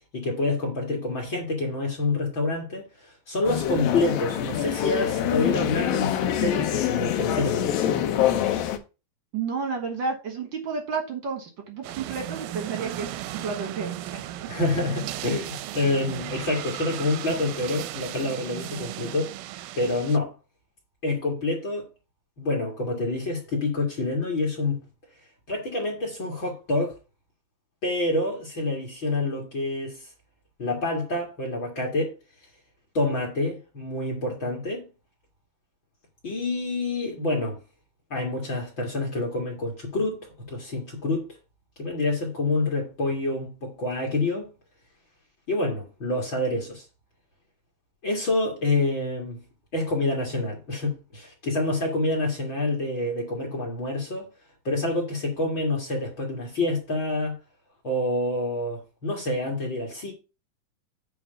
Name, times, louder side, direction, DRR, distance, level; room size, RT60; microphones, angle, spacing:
voice 1, 0.1-7.7 14.5-19.3 19.8-20.3 21.0-21.9 22.4-24.8 25.5-27.0 27.8-30.1 30.6-32.1 32.9-34.9 36.2-37.6 38.1-41.3 41.8-44.5 45.5-46.9 48.0-49.4 49.7-54.3 54.6-57.4 57.8-60.1, left 2 dB, 40° left, 2.2 m, -27 dB
sound 1, 3.4-8.8, left 11 dB, 90° left, 2.7 m, -25 dB
voice 2, 9.3-14.2, right 5 dB, 60° right, 1.3 m, -31 dB
sound 2, 11.8-20.2, right 13 dB, 85° right, 2.4 m, -36 dB
9.1 x 3.4 x 6.5 m
omnidirectional pair, 4.0 m